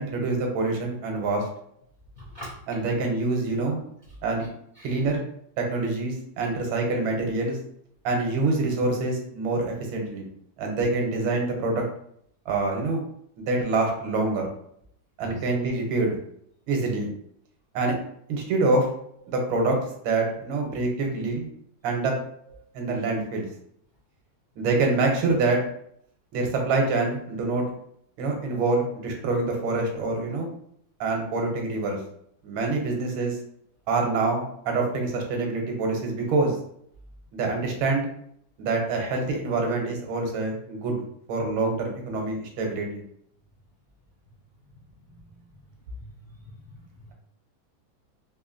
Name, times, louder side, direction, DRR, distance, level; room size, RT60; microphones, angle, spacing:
voice 1, 0.0-1.5 2.7-3.8 4.2-4.5 4.8-5.2 5.6-7.6 8.0-10.3 10.6-11.8 12.5-13.0 13.4-14.5 15.2-16.2 16.7-17.1 17.7-17.9 18.3-18.9 19.3-19.8 20.0-21.5 21.8-22.1 22.7-23.4 24.6-25.6 26.3-27.6 28.2-30.5 31.0-32.0 32.4-33.4 33.9-36.6 37.3-38.1 38.6-41.0 41.3-43.0, right 3 dB, 90° right, 2 dB, 1.6 m, -26 dB
voice 2, 2.2-2.6 4.8-5.0 15.2-15.4 45.0-45.4 46.0-46.8, equal, 40° left, -9 dB, 0.7 m, -43 dB
3.7 x 2.7 x 2.5 m, 0.68 s
omnidirectional pair, 2.2 m